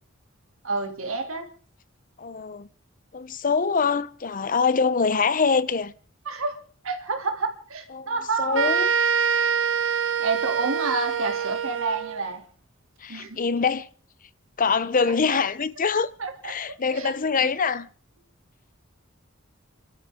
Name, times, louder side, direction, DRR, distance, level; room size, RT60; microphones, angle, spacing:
voice 1, 0.6-1.5 6.3-8.7 10.2-12.4 13.1-13.4 15.3-15.4 16.2-16.5 16.9-17.1, right 3 dB, 90° right, 2.7 m, -29 dB
voice 2, 2.2-2.7 3.1-5.9 7.9-8.1 8.4-8.9 13.0-13.9 14.6-16.1 16.4-17.9, left 5 dB, 40° left, 0.7 m, -24 dB
sound 1, 8.5-12.2, right 7 dB, 65° right, 1.1 m, -25 dB
30.0 x 13.0 x 3.6 m
head